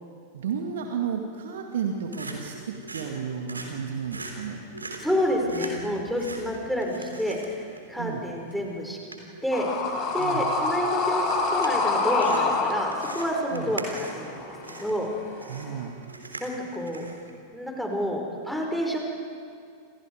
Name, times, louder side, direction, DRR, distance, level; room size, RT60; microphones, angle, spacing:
voice 1, 0.3-4.7 8.0-8.2 10.2-10.5 13.5-13.7 15.5-16.0, right 7 dB, 60° right, 3 dB, 2.1 m, -32 dB
sound 1, 1.7-17.3, right 2 dB, 80° right, 3.4 m, -43 dB
voice 2, 5.0-7.6 7.9-9.1 9.4-9.7 10.1-11.3 11.5-15.1 16.4-17.0 17.5-19.0, equal, ahead, 0 dB, 5.3 m, -29 dB
sound 2, 9.5-15.8, left 3 dB, 35° left, 4.4 m, -27 dB
28.5 x 28.0 x 4.9 m, 2.2 s
figure-of-eight pair, 90°, 0 cm